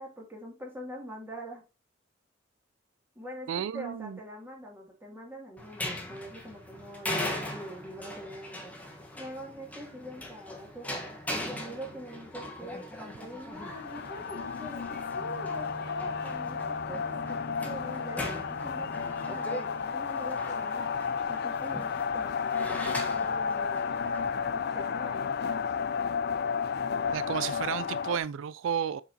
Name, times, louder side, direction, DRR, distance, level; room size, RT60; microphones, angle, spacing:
voice 1, 0.0-1.6 3.1-8.7 9.1-11.0 11.4-17.4 17.6-20.8 21.3-23.9 24.7-25.7, equal, 10° right, 2.5 m, -44 dB
voice 2, 3.5-4.2 27.1-29.0, right 8 dB, 85° right, 0.3 m, -32 dB
sound 1, 5.6-24.3, left 1 dB, 10° left, 1.2 m, -40 dB
sound 2, 13.5-28.2, left 6 dB, 55° left, 0.4 m, -32 dB
Wind instrument woodwind instrument, 15.2-19.9, right 1 dB, 40° right, 1.6 m, -45 dB
7.9 x 4.8 x 2.8 m
head